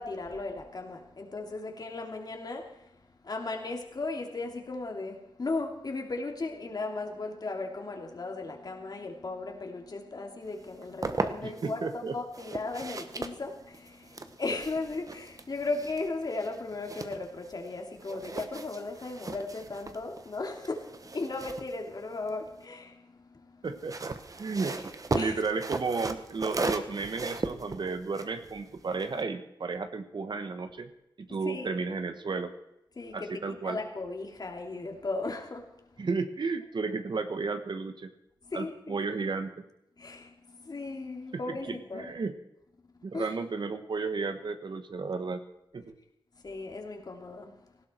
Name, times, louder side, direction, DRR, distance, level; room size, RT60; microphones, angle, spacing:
voice 1, 0.0-2.9 3.2-23.7 24.6-24.7 25.1-25.4 31.4-31.8 33.0-35.7 38.4-39.0 40.0-42.1 43.1-43.3 46.4-47.5, left 3 dB, 50° left, 3 dB, 2.9 m, -36 dB
sound 1, 10.6-11.7 12.3-17.7 18.0-22.6 23.6-29.2, right 3 dB, 40° right, 1.2 m, -37 dB
voice 2, 11.4-12.2 23.6-24.8 25.0-30.9 31.2-32.5 33.1-33.8 36.0-38.1 38.5-39.5 41.3-42.3 43.0-45.4 45.7-45.9, right 4 dB, 60° right, 9 dB, 1.4 m, -33 dB
18.5 x 16.5 x 4.6 m, 0.87 s
wide cardioid pair, 110°, 9 cm